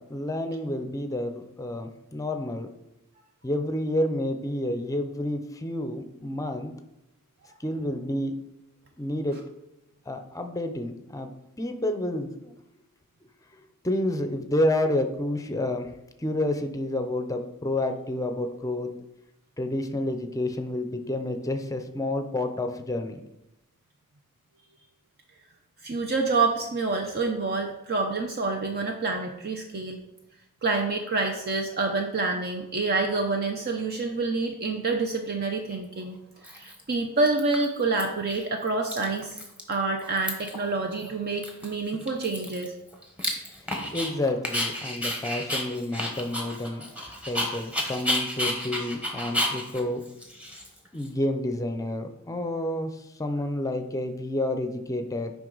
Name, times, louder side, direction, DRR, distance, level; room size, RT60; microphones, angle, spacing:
voice 1, 0.0-2.7 3.4-6.7 7.6-8.3 9.0-9.4 10.1-11.3 11.6-12.5 13.8-15.9 16.2-18.9 19.6-23.2 43.9-46.8 47.3-50.0 50.9-55.3, left 1 dB, 15° left, 7 dB, 0.6 m, -29 dB
voice 2, 25.8-30.0 30.6-36.2 36.5-39.4 39.7-42.7, right 3 dB, 45° right, 4 dB, 0.6 m, -27 dB
Dog, 35.7-35.8 36.4-36.9 37.3-38.0 38.3-38.4 38.7-39.7 40.0-40.6 41.0-41.1 41.4-44.1 44.4-51.1, left 1 dB, 5° right, 1.1 m, -31 dB
7.8 x 5.3 x 3.9 m, 0.89 s
head